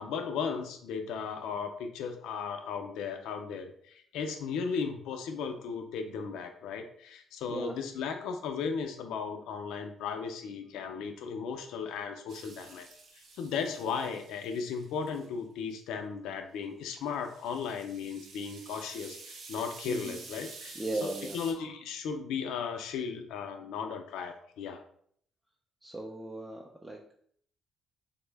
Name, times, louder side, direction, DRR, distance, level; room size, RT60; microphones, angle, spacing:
voice 1, 0.0-12.9 13.1-24.8, left 6 dB, 90° left, 5 dB, 0.4 m, -36 dB
sound 1, 12.3-15.3 17.1-21.5, right 3 dB, 80° right, 0.7 m, -49 dB
voice 2, 19.9-20.2 20.7-21.4 25.8-27.1, right 2 dB, 15° right, -1 dB, 0.4 m, -37 dB
3.5 x 2.0 x 3.3 m, 0.62 s
cardioid pair, 90°, 0 cm